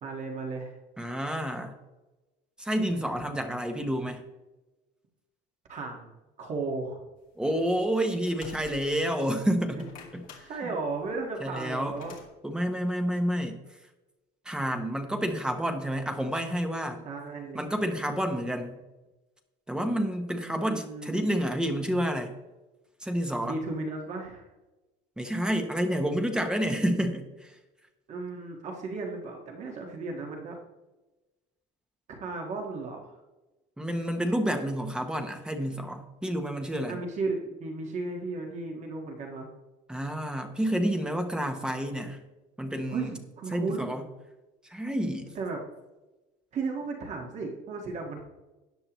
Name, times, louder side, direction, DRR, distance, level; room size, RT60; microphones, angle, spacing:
voice 1, 0.0-0.8 5.7-6.1 6.4-7.0 9.7-9.8 10.4-12.1 17.0-17.6 20.4-21.3 23.4-24.5 28.1-30.6 32.2-33.2 36.9-39.5 42.9-44.0 45.3-45.6 46.5-48.2, right 3 dB, 35° right, 1 dB, 1.6 m, -35 dB
voice 2, 1.0-1.8 2.6-4.2 7.4-9.8 10.1-10.7 11.4-12.0 12.4-13.6 14.4-17.0 17.5-18.8 19.7-22.3 23.0-23.6 25.2-27.5 33.8-37.0 39.9-42.2 42.6-43.1 43.5-44.0 44.7-45.3, equal, 5° right, 5 dB, 0.9 m, -29 dB
sound 1, 7.5-9.2 9.6-12.3, left 5 dB, 45° left, 2.3 m, -48 dB
13.5 x 9.5 x 3.0 m, 1.1 s
cardioid pair, 175°, 20 cm